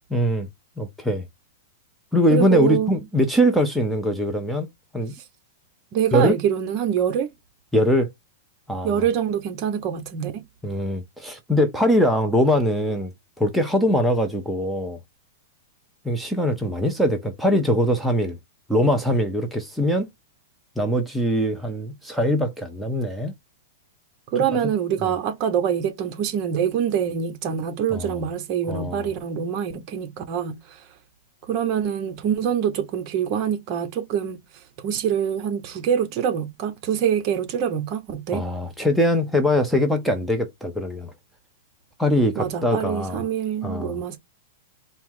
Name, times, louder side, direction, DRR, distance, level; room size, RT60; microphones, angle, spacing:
voice 1, 0.1-0.5 0.8-1.3 2.1-4.7 4.9-5.1 6.1-6.4 7.7-8.1 8.7-9.0 10.6-13.1 13.4-15.0 16.0-18.4 18.7-20.1 20.8-23.3 25.0-25.1 27.9-28.0 28.7-29.1 38.3-41.1 42.0-43.2 43.6-44.0, equal, ahead, 0.6 m, -22 dB
voice 2, 2.3-2.9 5.1-5.2 5.9-7.3 8.8-10.4 24.3-30.9 31.4-38.4 42.3-44.2, right 8 dB, 40° right, 0.9 m, -25 dB
4.4 x 2.1 x 3.6 m
hypercardioid pair, 145°, 0 cm